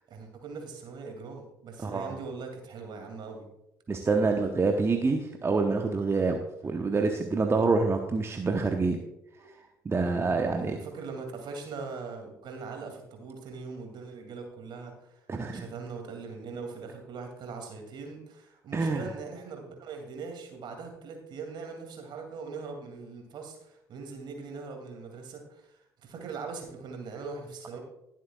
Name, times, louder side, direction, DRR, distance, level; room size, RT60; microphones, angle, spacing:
voice 1, 0.1-3.5 9.4-9.5 10.2-27.8, right 4 dB, 50° right, 3 dB, 2.7 m, -41 dB
voice 2, 1.8-2.2 3.9-9.0 9.8-10.8 15.3-15.6 18.7-19.1, right 3 dB, 25° right, 4 dB, 1.0 m, -27 dB
20.5 x 7.6 x 2.4 m, 0.83 s
figure-of-eight pair, 50°, 10 cm